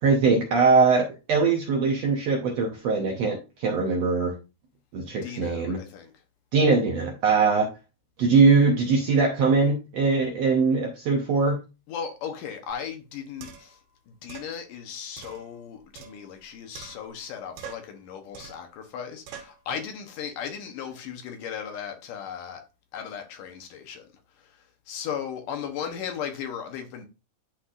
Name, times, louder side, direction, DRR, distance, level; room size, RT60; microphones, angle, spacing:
voice 1, 0.0-4.3 4.9-5.8 6.5-7.7 8.2-11.6, right 4 dB, 70° right, 1.6 m, -21 dB
voice 2, 5.1-6.2 11.9-13.8 14.1-22.6 22.9-24.1 24.4-27.1, left 7 dB, 70° left, 2.4 m, -36 dB
sound 1, 12.7-12.8 13.4-13.8 14.3-14.5 15.2-16.4 16.7-17.3 17.6-18.0 18.3-18.7 19.3-19.6, right 7 dB, 90° right, 3.1 m, -44 dB
11.5 x 4.2 x 2.5 m
omnidirectional pair, 4.1 m